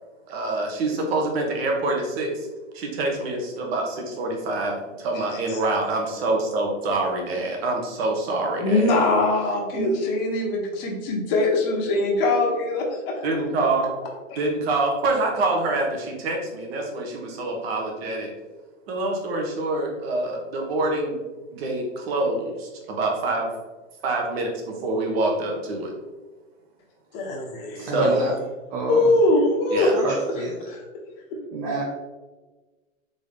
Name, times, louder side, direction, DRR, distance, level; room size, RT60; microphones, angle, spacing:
voice 1, 0.3-2.5 2.7-9.0 9.7-9.9 13.2-14.0 14.4-18.3 18.9-21.2 21.5-23.5 24.0-25.9 27.8-28.2 29.7-29.9, right 2 dB, 50° right, 1 dB, 1.2 m, -26 dB
voice 2, 5.1-5.6 8.6-13.2 14.3-14.4 27.1-28.2 28.9-29.9 30.6-30.8, left 2 dB, 45° left, 0 dB, 1.2 m, -22 dB
voice 3, 27.8-28.3 28.7-29.1 29.8-30.5 31.5-31.8, right 3 dB, 30° right, -2 dB, 0.6 m, -28 dB
4.0 x 3.6 x 3.4 m, 1.2 s
hypercardioid pair, 120°, 40 cm